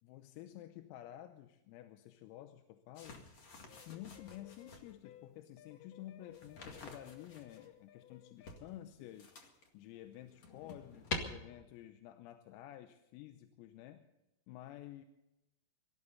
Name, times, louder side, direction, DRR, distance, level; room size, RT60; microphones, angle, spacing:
voice 1, 0.0-3.3 3.9-9.3 9.7-14.1 14.5-15.1, left 13 dB, 85° left, 8 dB, 3.6 m, -51 dB
sound 1, 2.9-4.9 6.3-7.7 8.4-9.7 10.1-11.2, left 3 dB, 50° left, 1.9 m, -46 dB
sound 2, 3.7-8.7, left 11 dB, 70° left, 3.0 m, -59 dB
24.5 x 14.5 x 4.1 m, 0.94 s
omnidirectional pair, 6.0 m